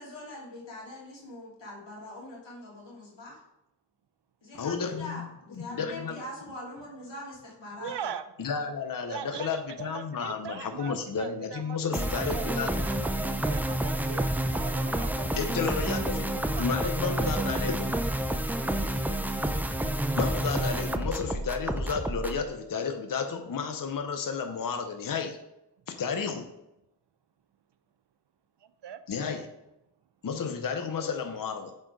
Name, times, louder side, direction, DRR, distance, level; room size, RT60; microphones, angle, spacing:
voice 1, 0.0-3.4 4.4-8.1, left 1 dB, 90° left, -5 dB, 2.7 m, -42 dB
voice 2, 4.5-5.2 5.7-6.2 8.4-12.8 15.3-16.3 16.6-17.9 20.2-25.4 25.9-26.4 29.1-29.5 30.2-31.7, left 5 dB, 50° left, 6 dB, 0.7 m, -32 dB
voice 3, 7.8-8.2 9.1-14.3 14.5-16.0 16.5-17.7 28.8-29.0, right 8 dB, 70° right, 12 dB, 0.6 m, -40 dB
sound 1, 11.9-22.4, right 1 dB, 5° right, 0.4 m, -29 dB
7.9 x 4.3 x 4.7 m, 0.87 s
wide cardioid pair, 105°, 43 cm